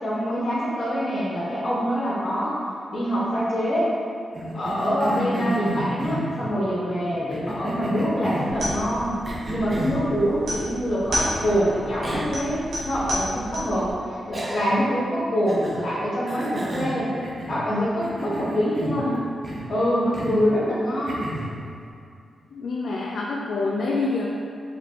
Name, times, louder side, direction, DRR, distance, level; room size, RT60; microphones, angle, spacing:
voice 1, 0.0-2.6 2.9-3.9 4.5-9.1 9.5-17.1 17.5-19.1 19.7-21.2, equal, 55° left, -10 dB, 1.1 m, -25 dB
Cough, 4.3-6.5 7.3-8.6 9.2-10.0 11.4-11.5 12.0-12.4 12.8-12.9 14.3-14.9 15.5-15.9 16.3-17.7 18.0-19.1 19.4-19.7 20.1-20.5 21.1-21.6, right 1 dB, 40° right, 0.9 m, -31 dB
sound 1, 8.5-13.9, equal, 85° right, 1.3 m, -32 dB
voice 2, 19.0-19.3 22.5-24.3, left 3 dB, 70° left, -3 dB, 0.4 m, -27 dB
5.1 x 3.0 x 2.9 m, 2.4 s
cardioid pair, 60°, 0 cm